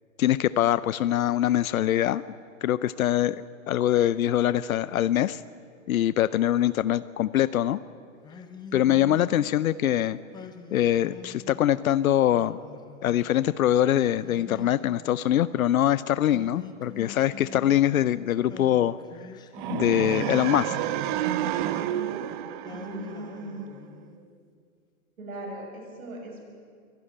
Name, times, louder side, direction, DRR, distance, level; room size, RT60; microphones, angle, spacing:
voice 1, 0.2-2.2 2.6-5.4 5.9-7.8 8.7-10.2 10.7-12.6 13.0-19.0 19.7-20.8, left 12 dB, 85° left, 16 dB, 0.7 m, -23 dB
Singing, 8.2-9.7 10.3-11.7 12.3-13.6 14.2-15.7 16.3-18.1 18.5-20.1 20.6-22.3 22.6-24.3, left 4 dB, 10° left, 1.0 m, -45 dB
sound 1, 19.5-23.6, right 12 dB, 35° right, 0.8 m, -30 dB
voice 2, 22.7-24.3 25.2-26.4, right 1 dB, 90° right, 1 dB, 6.8 m, -40 dB
23.5 x 12.0 x 9.9 m, 2.2 s
hypercardioid pair, 145°, 41 cm